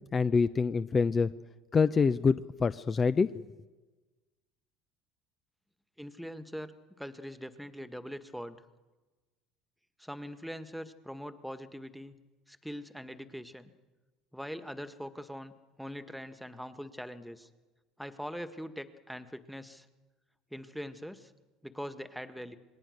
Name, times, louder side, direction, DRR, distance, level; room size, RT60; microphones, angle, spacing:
voice 1, 0.1-1.3 1.7-3.3, left 5 dB, 30° left, 13 dB, 0.8 m, -26 dB
voice 2, 6.0-6.7 7.0-8.6 10.0-12.2 12.5-13.7 14.3-15.5 15.8-17.5 18.0-19.9 20.5-21.3 21.6-22.6, equal, ahead, 11 dB, 1.7 m, -42 dB
27.0 x 20.5 x 6.6 m, 1.2 s
hypercardioid pair, 65°, 0 cm